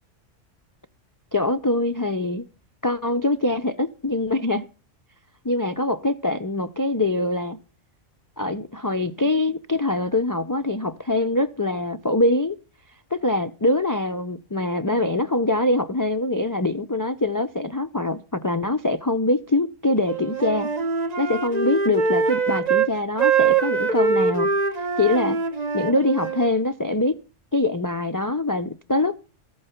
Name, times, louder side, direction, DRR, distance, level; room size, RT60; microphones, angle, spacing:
voice 1, 1.3-2.4 2.8-4.6 5.4-7.6 8.4-12.6 13.1-20.7 21.2-24.5 25.0-25.4 25.7-27.2 27.5-29.2, left 2 dB, 30° left, 0.4 m, -23 dB
Wind instrument woodwind instrument, 20.0-22.9 23.2-26.5, right 5 dB, 35° right, 1.0 m, -23 dB
14.0 x 8.6 x 5.8 m
omnidirectional pair, 1.2 m